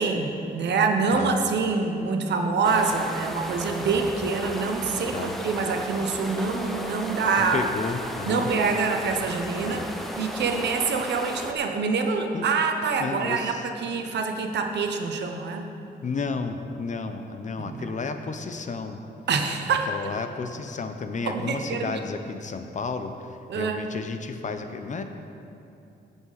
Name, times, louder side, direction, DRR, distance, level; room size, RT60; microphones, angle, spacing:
voice 1, 0.0-7.6 8.3-9.8 10.2-15.7 17.6-17.8 19.3-19.9 21.3-22.0 23.5-23.8, right 4 dB, 80° right, 4 dB, 1.0 m, -26 dB
sound 1, 2.6-11.5, equal, ahead, 0.8 m, -35 dB
voice 2, 7.4-8.5 9.6-9.8 12.3-12.4 13.0-13.7 16.0-19.0 19.9-25.0, left 4 dB, 45° left, 7 dB, 0.8 m, -32 dB
16.5 x 6.9 x 4.1 m, 2.7 s
cardioid pair, 110°, 18 cm